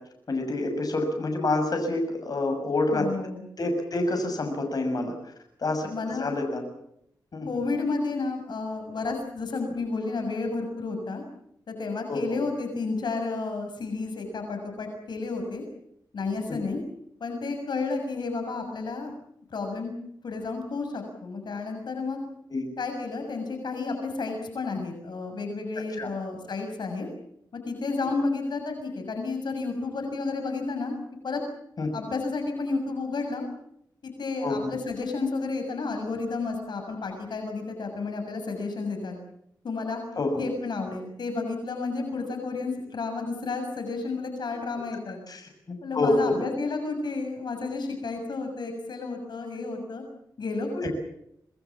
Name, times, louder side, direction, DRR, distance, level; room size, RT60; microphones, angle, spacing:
voice 1, 0.3-3.1 3.6-5.1 5.6-6.6 7.3-7.6 12.1-12.4 16.5-16.6 22.5-22.7 25.9-26.1 28.0-28.1 31.8-31.9 34.4-34.7 40.1-40.4 45.3-46.4 50.8-50.9, left 2 dB, 55° left, 4 dB, 6.9 m, -27 dB
voice 2, 2.9-3.4 5.8-6.4 7.5-11.2 11.7-15.6 16.1-16.8 17.2-19.1 19.5-19.9 20.2-22.2 22.8-27.1 27.5-30.9 31.2-31.4 31.9-33.4 34.0-39.2 39.6-40.0 40.4-45.2 45.8-50.0 50.4-50.9, left 3 dB, 70° left, 4 dB, 6.8 m, -31 dB
27.0 x 21.0 x 7.3 m, 0.74 s
wide cardioid pair, 85°, 8 cm